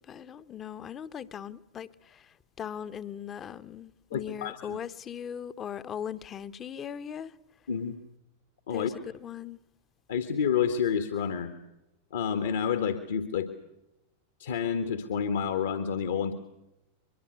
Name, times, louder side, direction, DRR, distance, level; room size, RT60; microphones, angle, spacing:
voice 1, 0.0-7.3 8.7-9.6, left 8 dB, 25° left, 1.1 m, -39 dB
voice 2, 4.1-4.8 7.7-8.0 8.7-8.9 10.1-11.5 12.1-13.5 14.4-16.3, left 7 dB, 60° left, 1.8 m, -29 dB
23.5 x 23.5 x 8.1 m
figure-of-eight pair, 90°, 0 cm